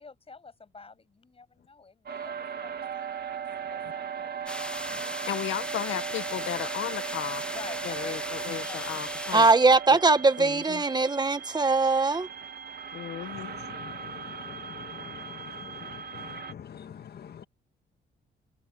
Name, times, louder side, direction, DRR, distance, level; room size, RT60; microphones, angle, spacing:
voice 1, 0.0-3.3 3.7-4.4 4.9-5.3 7.5-8.1 8.7-9.0 9.3-9.5, left 4 dB, 30° left, 7.8 m, -48 dB
sound 1, 2.1-16.5, right 7 dB, 50° right, 2.0 m, -38 dB
sound 2, 4.5-9.5, left 1 dB, 5° left, 1.5 m, -37 dB
voice 2, 5.3-7.4 7.8-9.5 9.9-10.0 10.4-10.8 12.9-13.5, left 12 dB, 80° left, 1.6 m, -35 dB
voice 3, 9.3-12.3, right 3 dB, 20° right, 1.6 m, -21 dB
voice 4, 13.3-17.4, left 8 dB, 55° left, 1.9 m, -45 dB
cardioid pair, 90°, 20 cm